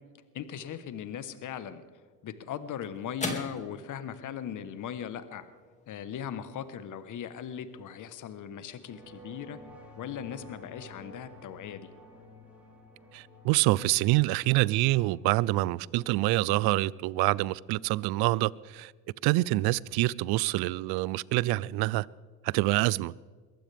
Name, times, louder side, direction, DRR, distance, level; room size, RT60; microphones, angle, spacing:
voice 1, 0.3-1.8 2.2-5.4 5.9-9.6 10.0-11.9, left 9 dB, 45° left, 1.2 m, -39 dB
sound 1, 1.9-10.5, left 2 dB, 15° left, 2.4 m, -45 dB
sound 2, 8.7-17.4, left 1 dB, 5° right, 4.3 m, -52 dB
voice 2, 13.1-18.9 19.2-22.1 22.4-23.1, right 19 dB, 60° right, 0.5 m, -26 dB
22.0 x 15.5 x 3.5 m
supercardioid pair, 95°, 45 cm